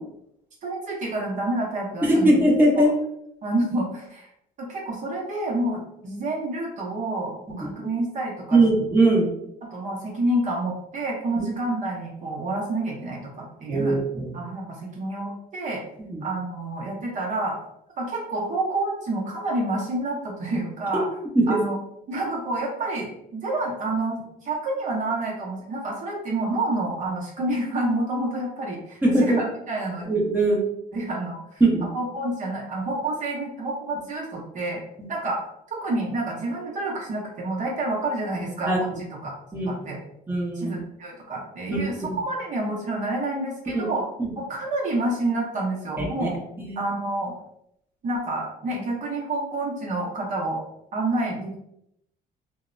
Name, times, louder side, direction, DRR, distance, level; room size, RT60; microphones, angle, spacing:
voice 1, 0.6-2.4 2.8-2.9 3.4-4.3 4.6-8.6 9.6-14.0 14.3-15.8 16.2-17.6 18.0-21.1 21.5-21.8 22.1-30.1 30.9-31.6 31.9-34.8 35.1-35.4 35.7-39.3 39.7-40.0 40.5-44.0 44.4-46.3 46.8-47.3 48.0-50.6 50.9-51.5, right 2 dB, 45° right, -2 dB, 0.7 m, -28 dB
voice 2, 2.0-2.9 7.5-7.6 8.5-9.3 11.4-11.5 13.7-14.3 16.1-16.2 21.3-21.6 29.0-29.4 30.1-30.7 31.6-31.9 38.7-38.8 39.5-39.7 40.3-40.7 41.7-42.1 43.7-43.9 44.2-44.3 46.2-46.3 46.7-46.8, right 2 dB, 10° right, -3 dB, 0.7 m, -20 dB
2.7 x 2.0 x 2.5 m, 0.77 s
cardioid pair, 110°, 17 cm